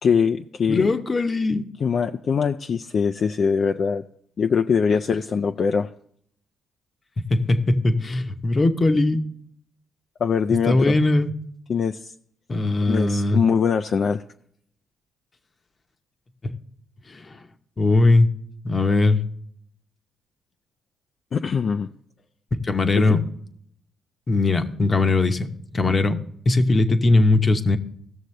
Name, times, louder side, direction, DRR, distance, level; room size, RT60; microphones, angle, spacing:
voice 1, 0.0-1.0 1.8-4.0 4.4-5.9 10.2-10.9 11.7-12.1 12.9-14.2 21.3-21.9 22.9-23.1, left 6 dB, 50° left, 7 dB, 0.4 m, -22 dB
voice 2, 0.7-1.6 7.3-9.2 10.7-11.3 12.5-13.4 16.4-16.5 17.1-17.4 17.8-18.3 18.6-19.2 22.6-23.2 24.3-26.2 26.5-27.8, left 2 dB, 30° left, 8 dB, 0.9 m, -20 dB
16.5 x 6.5 x 3.2 m, 0.67 s
cardioid pair, 90°, 0 cm